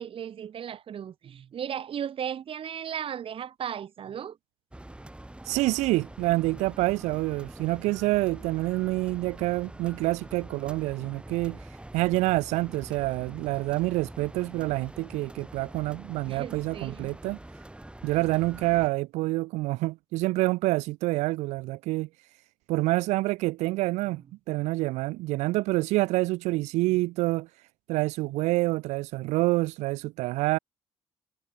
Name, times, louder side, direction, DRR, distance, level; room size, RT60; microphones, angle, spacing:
voice 1, 0.0-4.4 16.2-17.1, right 9 dB, 50° right, 0.8 m, -36 dB
sound 1, 4.7-18.9, right 1 dB, 10° right, 2.7 m, -45 dB
voice 2, 5.4-11.6 11.9-17.4 18.0-22.1 22.7-27.5 27.9-30.6, right 20 dB, 90° right, 0.4 m, -27 dB
cardioid pair, 80°, 12 cm